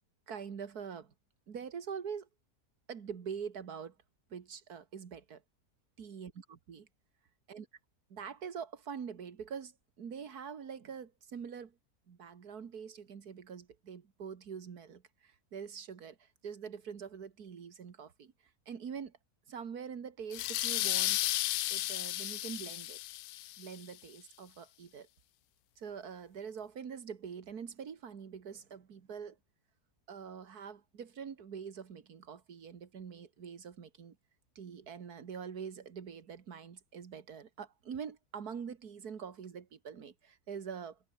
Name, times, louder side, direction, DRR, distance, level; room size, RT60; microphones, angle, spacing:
voice 1, 0.3-1.1 1.5-2.3 2.9-4.0 4.3-5.4 6.0-6.9 7.5-7.7 8.1-11.8 12.1-18.3 18.7-19.2 19.5-21.3 21.7-23.0 23.6-25.1 25.8-29.4 30.1-34.2 34.6-41.0, right 7 dB, 75° right, 2.2 m, -44 dB
sound 1, 20.3-23.8, left 16 dB, 75° left, 1.0 m, -33 dB
omnidirectional pair, 1.7 m